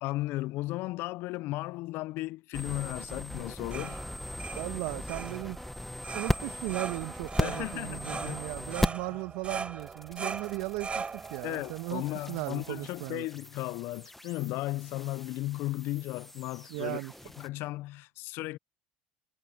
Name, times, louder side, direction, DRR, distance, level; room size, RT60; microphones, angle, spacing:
voice 1, 0.0-4.0 4.4-4.6 7.4-8.4 11.4-17.0 17.4-18.6, left 18 dB, 60° left, 0.9 m, -35 dB
sound 1, 2.5-9.2 9.4-17.5, left 1 dB, 5° left, 1.4 m, -38 dB
sound 2, 3.4-13.1, right 5 dB, 25° right, 5.8 m, -41 dB
voice 2, 4.5-5.6 6.1-13.3 16.7-17.1, right 25 dB, 70° right, 1.5 m, -37 dB
hypercardioid pair, 75°, 4 cm